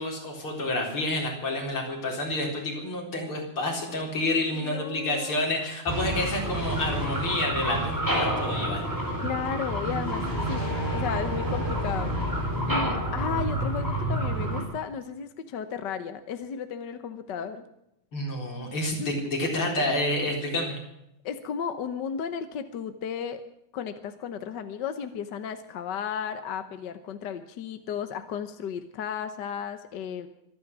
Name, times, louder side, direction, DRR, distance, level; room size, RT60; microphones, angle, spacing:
voice 1, 0.0-8.9 18.1-20.8, left 1 dB, 80° left, 0 dB, 5.0 m, -29 dB
voice 2, 4.5-5.6 9.2-10.6 10.9-12.1 12.7-17.6 19.0-19.1 19.4-19.7 21.2-23.4 23.7-30.3, left 7 dB, 60° left, 9 dB, 1.5 m, -34 dB
sound 1, 5.9-14.6, right 1 dB, 10° right, 4.3 m, -28 dB
25.0 x 9.5 x 6.1 m, 0.82 s
omnidirectional pair, 2.4 m